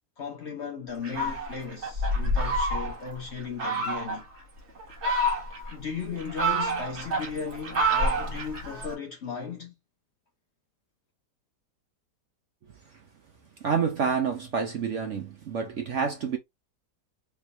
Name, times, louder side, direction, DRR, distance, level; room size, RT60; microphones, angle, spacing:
voice 1, 0.2-4.2 5.7-9.7, left 5 dB, 50° left, 0.9 m, -36 dB
Fowl, 1.0-3.1 3.6-4.2 4.8-5.7 6.2-8.9, right 1 dB, 45° right, 1.5 m, -28 dB
voice 2, 13.6-16.4, right 6 dB, 60° right, 0.8 m, -28 dB
3.4 x 3.0 x 2.6 m
omnidirectional pair, 1.8 m